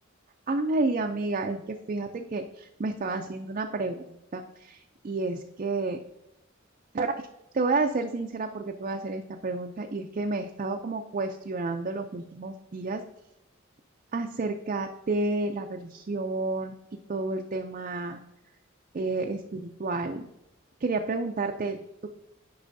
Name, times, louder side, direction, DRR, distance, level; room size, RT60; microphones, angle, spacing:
voice 1, 0.5-6.0 6.9-7.1 7.5-13.0 14.1-16.7 17.1-18.2 18.9-20.3 20.8-22.1, right 3 dB, 40° right, 3 dB, 0.4 m, -30 dB
9.9 x 5.4 x 2.6 m, 0.88 s
head